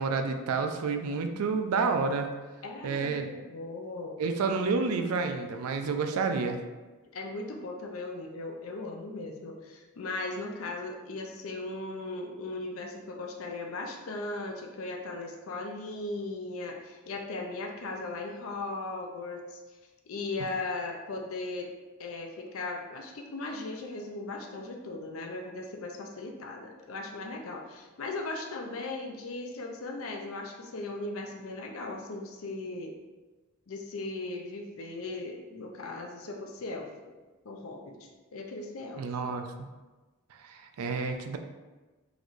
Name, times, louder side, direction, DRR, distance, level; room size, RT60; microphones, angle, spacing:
voice 1, 0.0-2.3 2.8-3.3 4.2-6.6 39.0-39.7 40.4-41.4, right 4 dB, 90° right, 6 dB, 0.4 m, -29 dB
voice 2, 2.6-4.2 7.1-19.6 20.1-21.7 22.0-32.9 33.7-37.1 37.4-38.0 38.3-39.3, left 2 dB, 70° left, 2 dB, 0.5 m, -38 dB
3.9 x 3.1 x 2.5 m, 1.2 s
head